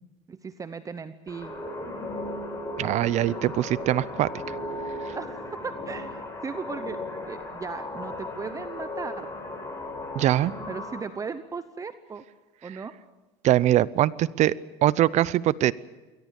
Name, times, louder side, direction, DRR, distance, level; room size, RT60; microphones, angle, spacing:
voice 1, 0.3-1.5 5.1-7.0 7.3-9.3 10.7-12.2 12.6-12.9, right 5 dB, 20° right, 12 dB, 0.9 m, -37 dB
sound 1, 1.3-11.0, left 1 dB, 15° left, 6.5 m, -36 dB
voice 2, 2.8-4.3 10.2-10.5 13.4-14.5 14.8-15.7, right 13 dB, 50° right, 21 dB, 0.6 m, -22 dB
23.0 x 17.5 x 8.2 m, 1.2 s
supercardioid pair, 110°, 16 cm